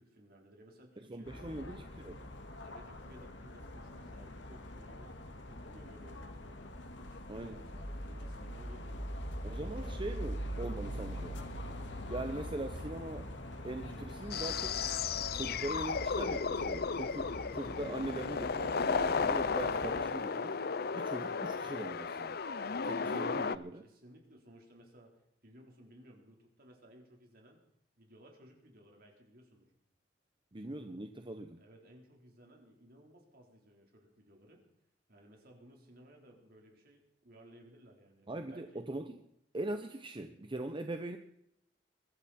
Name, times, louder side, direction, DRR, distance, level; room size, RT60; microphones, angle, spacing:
voice 1, 0.0-1.9 2.5-6.7 6.9-9.1 9.5-10.0 22.7-23.4 23.7-27.6 28.0-29.7 31.6-34.6 35.1-38.9, equal, 55° right, 1 dB, 3.9 m, -59 dB
voice 2, 1.1-2.3 7.3-7.6 9.4-11.4 12.1-13.3 13.6-14.8 15.3-20.5 20.9-22.4 22.8-23.9 30.5-31.6 38.3-39.2 39.5-41.2, right 1 dB, 30° right, 7 dB, 0.8 m, -41 dB
sound 1, 1.2-20.0, equal, 80° left, 2.0 m, -43 dB
sound 2, 10.8-22.3, equal, 10° left, 3.0 m, -57 dB
sound 3, 14.3-23.6, left 5 dB, 60° left, 0.6 m, -34 dB
23.0 x 12.5 x 4.3 m, 0.77 s
head